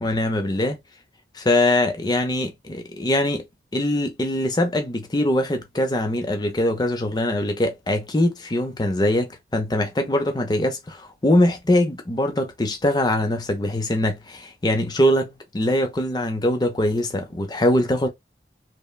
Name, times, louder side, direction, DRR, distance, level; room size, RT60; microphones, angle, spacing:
voice 1, 0.0-0.8 1.3-3.5 3.7-18.1, left 1 dB, 20° left, 0.5 m, -22 dB
3.1 x 2.1 x 2.2 m
head